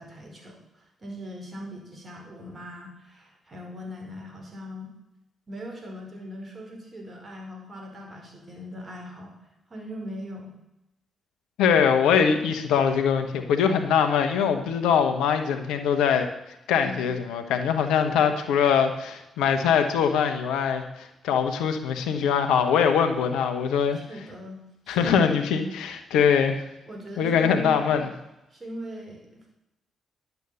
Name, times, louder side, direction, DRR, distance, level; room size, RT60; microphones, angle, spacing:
voice 1, 0.0-4.9 5.5-9.3 9.7-10.5 16.8-17.0 23.9-24.6 24.8-25.6 26.9-28.0 28.5-29.3, equal, 35° right, 2 dB, 4.8 m, -39 dB
voice 2, 11.6-16.3 16.7-24.0 24.9-26.6 27.2-28.1, left 7 dB, 80° left, 6 dB, 1.1 m, -22 dB
11.0 x 8.3 x 6.9 m, 0.90 s
hypercardioid pair, 40°, 0 cm